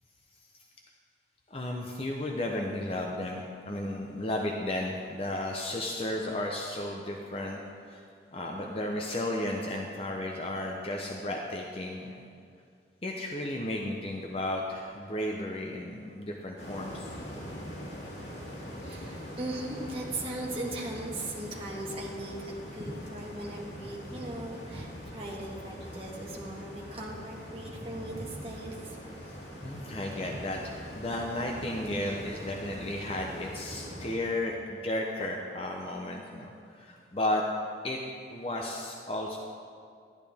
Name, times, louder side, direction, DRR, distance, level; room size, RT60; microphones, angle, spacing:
voice 1, 1.5-7.6 7.9-8.0 8.3-12.2 13.0-17.1 29.6-37.4 37.8-38.0 38.3-39.4, left 1 dB, 30° left, 0 dB, 0.7 m, -34 dB
sound 1, 16.6-34.1, equal, 85° left, 2.4 m, -43 dB
voice 2, 18.8-29.0 30.2-30.3, right 1 dB, 30° right, -3 dB, 1.5 m, -38 dB
11.5 x 10.5 x 3.5 m, 2.2 s
head